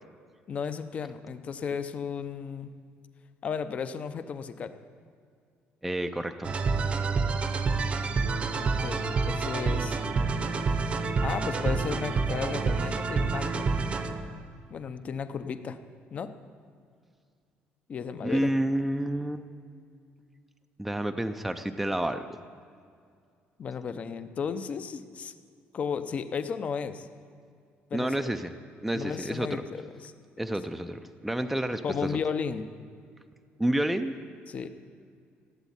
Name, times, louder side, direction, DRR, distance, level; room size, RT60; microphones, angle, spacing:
voice 1, 0.5-2.7 3.4-4.8 8.6-10.0 11.2-13.7 14.7-15.8 16.1-16.3 17.9-18.5 23.6-25.3 25.7-27.1 27.9-28.3 28.9-30.1 31.8-32.7 34.5-34.7, left 6 dB, 35° left, 11 dB, 0.7 m, -34 dB
voice 2, 5.8-6.6 18.2-19.4 20.8-22.3 27.9-28.5 28.8-29.6 30.4-32.2 33.6-34.2, right 1 dB, ahead, 7 dB, 0.5 m, -29 dB
sound 1, 6.4-14.4, right 4 dB, 30° right, 0.8 m, -28 dB
16.0 x 8.1 x 9.9 m, 2.2 s
cardioid pair, 170°, 4 cm